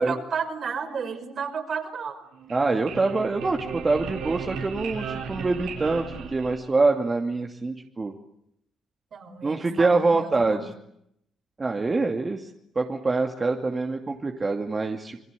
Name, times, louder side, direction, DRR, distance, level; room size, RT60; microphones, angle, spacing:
voice 1, 0.0-2.2 9.1-10.7, right 6 dB, 55° right, 6 dB, 5.5 m, -32 dB
sound 1, 2.3-7.0, right 6 dB, 85° right, 6.7 m, -36 dB
voice 2, 2.5-8.1 9.4-10.7 11.6-15.2, right 3 dB, 30° right, 3 dB, 2.5 m, -25 dB
29.0 x 23.0 x 8.4 m, 0.77 s
cardioid pair, 90°, 0 cm